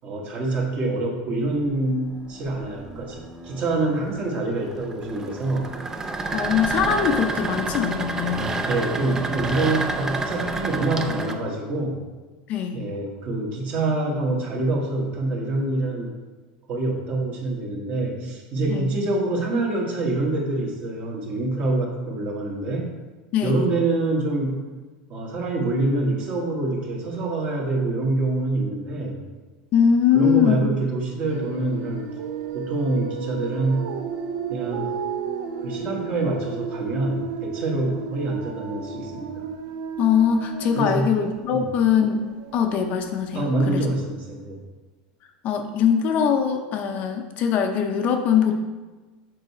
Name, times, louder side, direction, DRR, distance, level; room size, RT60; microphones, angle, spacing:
voice 1, 0.0-5.7 8.6-12.0 12.7-16.1 16.7-22.9 23.4-24.6 25.1-29.2 30.1-32.2 32.5-33.9 34.5-34.9 35.6-39.5 40.7-41.1 41.5-41.6 43.3-44.6, right 2 dB, 35° right, 0 dB, 1.4 m, -26 dB
sound 1, 1.5-11.3, right 3 dB, 15° right, 0.4 m, -30 dB
voice 2, 6.3-8.6 12.5-12.8 18.7-18.9 23.3-23.6 29.7-30.7 40.0-42.2 42.5-43.9 45.4-48.6, left 7 dB, 40° left, 5 dB, 0.5 m, -22 dB
sound 2, 31.3-43.7, right 6 dB, 65° right, 0.6 m, -33 dB
6.4 x 4.7 x 4.2 m, 1.3 s
supercardioid pair, 150°, 4 cm